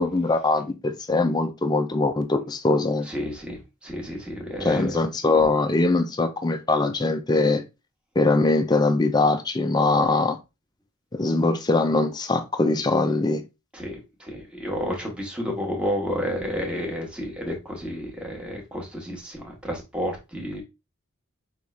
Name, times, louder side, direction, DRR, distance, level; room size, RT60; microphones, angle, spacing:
voice 1, 0.0-3.1 4.6-7.6 8.2-10.4 11.1-13.4, left 2 dB, 20° left, 0.4 m, -22 dB
voice 2, 3.1-4.9 13.7-20.6, equal, 5° right, 1.1 m, -31 dB
5.4 x 2.4 x 3.2 m
head